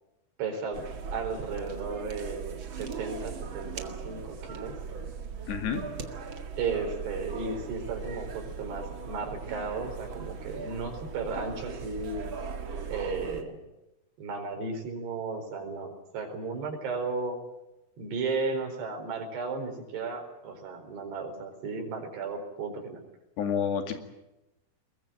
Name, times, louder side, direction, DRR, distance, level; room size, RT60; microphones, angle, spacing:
voice 1, 0.4-0.8 1.1-4.8 6.6-12.3 12.9-13.6 14.2-17.4 18.0-23.0, right 4 dB, 70° right, 4 dB, 6.4 m, -34 dB
sound 1, 0.7-13.4, right 5 dB, 45° right, 1.7 m, -39 dB
voice 2, 5.5-5.8 23.4-24.0, left 7 dB, 70° left, 6 dB, 4.4 m, -29 dB
22.5 x 21.5 x 9.0 m, 0.94 s
omnidirectional pair, 5.0 m